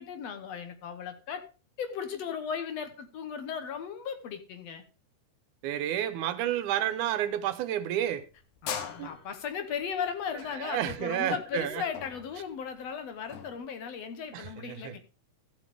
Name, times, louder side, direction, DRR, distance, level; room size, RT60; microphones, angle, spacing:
voice 1, 0.0-1.5 1.8-4.8 8.6-15.0, left 7 dB, 65° left, 2.0 m, -36 dB
voice 2, 5.6-8.2 9.0-9.1 10.5-11.8 14.3-15.0, right 11 dB, 85° right, 2.3 m, -30 dB
sound 1, 8.1-13.6, left 8 dB, 80° left, 2.6 m, -41 dB
14.5 x 7.6 x 3.5 m
omnidirectional pair, 3.5 m